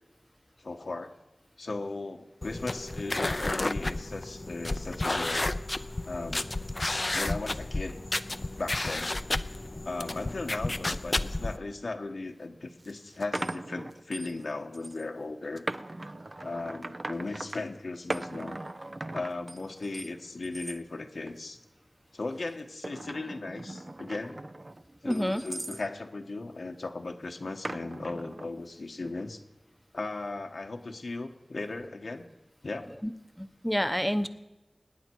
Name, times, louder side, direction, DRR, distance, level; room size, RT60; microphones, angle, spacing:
voice 1, 0.6-1.1 1.6-5.5 6.1-6.5 7.1-8.0 8.6-9.1 9.8-15.7 16.4-18.6 19.1-21.6 22.1-24.4 25.0-29.4 29.9-32.3 32.6-32.9, left 3 dB, 80° left, 3 dB, 1.3 m, -37 dB
sound 1, 2.4-11.6, left 2 dB, 40° left, 0.6 m, -32 dB
sound 2, 12.2-12.3 12.8-14.4 14.7-15.0 15.6-17.6 18.1-20.1 20.4-20.8 21.3-21.6 22.4-25.8 27.6-28.5, right 2 dB, 40° right, 0.6 m, -39 dB
voice 2, 25.0-25.4 33.0-33.1 33.4-34.3, equal, 5° left, 10 dB, 0.9 m, -28 dB
25.5 x 10.0 x 4.6 m, 1.0 s
wide cardioid pair, 65°, 0 cm